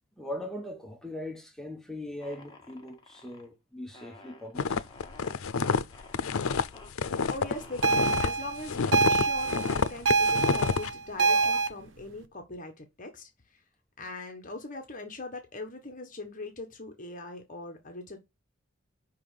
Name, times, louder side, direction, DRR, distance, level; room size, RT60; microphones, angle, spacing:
voice 1, 0.2-4.9, left 1 dB, 5° left, 0.9 m, -40 dB
sound 1, 2.2-3.5 3.9-5.4 5.9-6.2 6.7-6.9 7.4-8.2 8.8-8.9 9.1-9.9 10.5-10.7 11.0-11.7, left 2 dB, 20° left, 1.6 m, -49 dB
sound 2, 4.5-8.3 8.6-10.9, left 5 dB, 85° left, 0.6 m, -28 dB
voice 2, 7.0-13.6 14.0-18.2, left 2 dB, 40° left, 1.4 m, -41 dB
sound 3, 7.8-11.7, right 4 dB, 60° right, 0.7 m, -26 dB
5.7 x 5.6 x 6.8 m
head